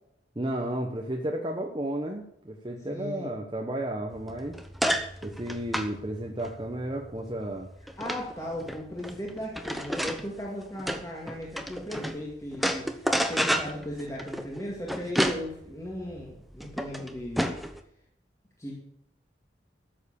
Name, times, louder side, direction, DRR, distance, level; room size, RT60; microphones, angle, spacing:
voice 1, 0.3-4.5 5.2-7.7, right 1 dB, 25° right, 1 dB, 1.1 m, -33 dB
voice 2, 2.9-3.3 8.0-12.9 13.3-17.6 18.6-18.8, left 1 dB, 15° left, -3 dB, 2.2 m, -37 dB
sound 1, 4.1-12.2 12.5-17.8, equal, ahead, 0.8 m, -31 dB
13.5 x 7.5 x 7.2 m, 0.76 s
head